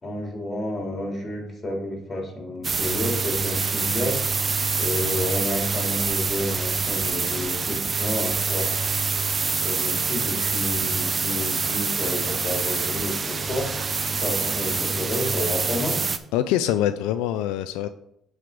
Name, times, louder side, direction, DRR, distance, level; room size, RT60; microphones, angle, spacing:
voice 1, 0.0-4.4 4.8-8.8 9.6-13.7 14.1-16.0, left 1 dB, 30° left, 0 dB, 3.3 m, -30 dB
sound 1, 2.6-16.2, right 4 dB, 35° right, 0.6 m, -26 dB
Tools, 8.7-14.0, right 6 dB, 55° right, 0.9 m, -44 dB
Bicycle, 11.6-14.8, equal, ahead, 3.0 m, -47 dB
voice 2, 16.3-17.9, left 12 dB, 90° left, 11 dB, 0.3 m, -24 dB
7.5 x 4.8 x 5.1 m, 0.74 s
cardioid pair, 85°, 0 cm